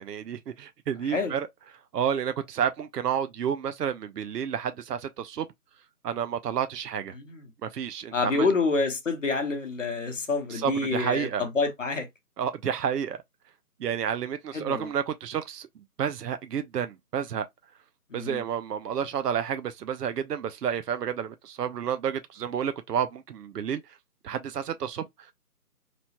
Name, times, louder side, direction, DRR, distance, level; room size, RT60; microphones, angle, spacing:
voice 1, 0.0-1.5 1.9-5.5 6.0-7.1 7.6-8.5 10.5-11.4 12.4-13.2 13.8-17.5 18.1-23.8 24.2-25.3, right 8 dB, 80° right, 0.5 m, -30 dB
voice 2, 1.0-1.3 7.1-7.5 8.1-12.1 14.5-14.9 18.1-18.4, left 3 dB, 50° left, 0.9 m, -28 dB
3.0 x 2.1 x 2.8 m
figure-of-eight pair, 160°, 47 cm